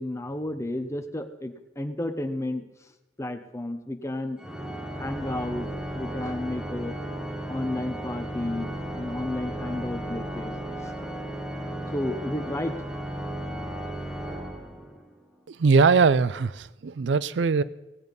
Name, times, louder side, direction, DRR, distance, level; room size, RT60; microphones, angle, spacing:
voice 1, 0.0-2.6 3.2-4.4 5.0-5.7 5.9-7.0 7.5-10.9 11.9-12.7, left 1 dB, 15° left, 7 dB, 0.9 m, -32 dB
Organ, 4.4-15.2, right 1 dB, 5° right, 1.4 m, -35 dB
voice 2, 15.5-17.6, right 5 dB, 75° right, 17 dB, 0.4 m, -21 dB
17.5 x 8.0 x 5.3 m, 0.98 s
head